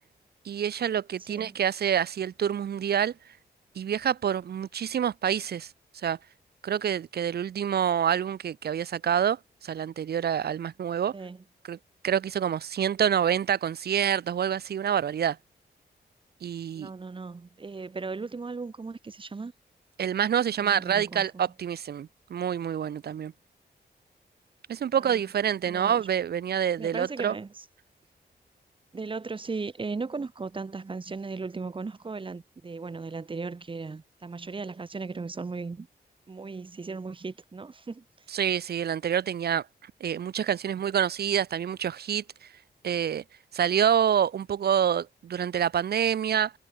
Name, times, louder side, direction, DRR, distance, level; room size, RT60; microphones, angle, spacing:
voice 1, 0.4-3.1 3.8-5.7 6.0-6.2 6.6-11.1 11.7-11.8 12.0-15.4 16.4-16.9 20.0-23.3 24.7-27.4 38.3-39.6 40.0-42.5 42.8-43.2 43.5-46.5, right 9 dB, 65° right, 0.8 m, -27 dB
voice 2, 1.3-1.6 11.1-11.4 16.8-19.5 20.6-21.5 25.0-25.2 25.6-26.0 26.8-27.6 28.9-35.9 36.3-38.0, right 4 dB, 30° right, 2.7 m, -37 dB
wide cardioid pair, 170°, 18 cm